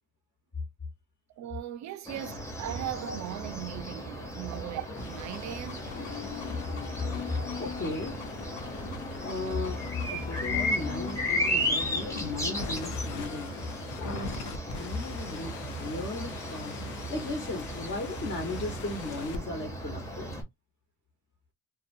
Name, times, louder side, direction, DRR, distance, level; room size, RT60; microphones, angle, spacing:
voice 1, 1.4-5.9, right 12 dB, 65° right, 0.5 m, -38 dB
sound 1, 2.1-20.4, equal, 10° left, 0.9 m, -35 dB
sound 2, 4.9-19.4, left 4 dB, 90° left, 0.7 m, -43 dB
sound 3, 5.8-12.6, left 6 dB, 65° left, 1.0 m, -41 dB
voice 2, 7.6-8.2 9.2-9.8 10.0-13.5 14.0-14.3 14.7-20.3, left 2 dB, 40° left, 1.1 m, -36 dB
2.6 x 2.2 x 2.5 m
cardioid pair, 90°, 30 cm